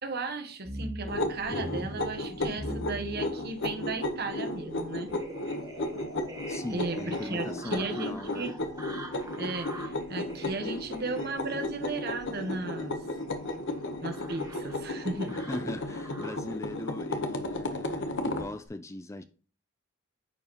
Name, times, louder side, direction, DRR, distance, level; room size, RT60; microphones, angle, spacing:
voice 1, 0.0-5.1 6.7-8.5 9.4-12.9 14.0-15.3, right 3 dB, 50° right, 1.0 m, -35 dB
sound 1, 0.6-16.6 17.2-17.9 18.3-18.5, right 1 dB, 15° right, 1.0 m, -44 dB
sound 2, 1.1-18.5, left 1 dB, 60° left, 1.0 m, -34 dB
voice 2, 6.5-8.5 15.3-19.2, left 2 dB, 15° left, 0.3 m, -40 dB
9.7 x 4.7 x 2.9 m
head